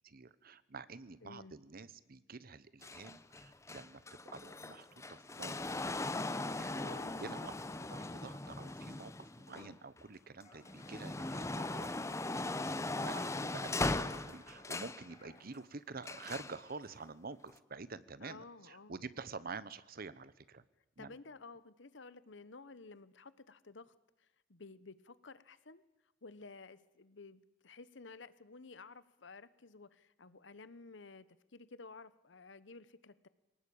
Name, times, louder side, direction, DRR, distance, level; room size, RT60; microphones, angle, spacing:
voice 1, 0.0-4.0 4.3-5.8 6.3-7.6 7.9-11.9 12.6-20.6 21.0-21.1, right 4 dB, 50° right, 16 dB, 0.9 m, -48 dB
voice 2, 1.2-1.5 6.8-8.0 9.5-9.8 18.2-19.0 21.0-25.8 26.2-31.3 31.5-33.3, left 3 dB, 65° left, 16 dB, 1.0 m, -54 dB
sound 1, 2.8-10.0 10.5-15.1 16.0-16.6 17.5-17.6, left 2 dB, 15° left, 0.7 m, -39 dB
sound 2, 10.4-15.4, left 2 dB, 35° left, 3.6 m, -62 dB
23.0 x 19.0 x 8.8 m, 1.0 s
head